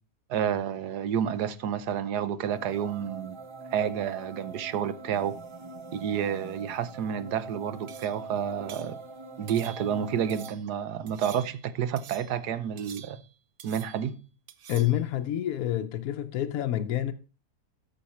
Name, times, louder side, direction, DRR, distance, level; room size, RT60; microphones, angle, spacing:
voice 1, 0.3-3.4 3.7-5.3 5.9-9.0 9.4-13.2 13.6-14.2, right 8 dB, 75° right, 1.4 m, -30 dB
sound 1, 2.5-10.5, right 3 dB, 25° right, 0.7 m, -43 dB
sound 2, 7.9-8.3 8.7-9.0 9.5-10.0 10.3-10.7 11.1-11.7 12.0-12.4 12.8-13.3 13.6-14.1 14.5-15.0, right 9 dB, 60° right, 0.9 m, -48 dB
voice 2, 14.7-17.1, left 12 dB, 65° left, 1.1 m, -28 dB
13.0 x 5.7 x 4.3 m
omnidirectional pair, 1.7 m